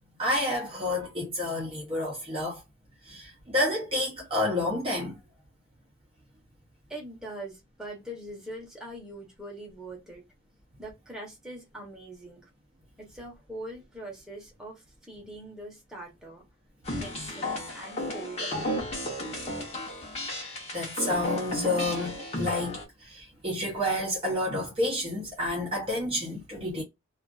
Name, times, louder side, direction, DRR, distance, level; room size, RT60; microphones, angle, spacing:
voice 1, 0.2-2.6 3.0-5.2 18.5-18.7 20.7-26.8, left 1 dB, 25° right, 0.6 m, -30 dB
voice 2, 6.9-10.2 10.8-12.5 13.0-16.5 16.9-18.6, right 1 dB, 5° right, 0.9 m, -42 dB
sound 1, 16.9-22.8, left 1 dB, 30° left, 0.8 m, -33 dB
2.4 x 2.3 x 2.3 m
head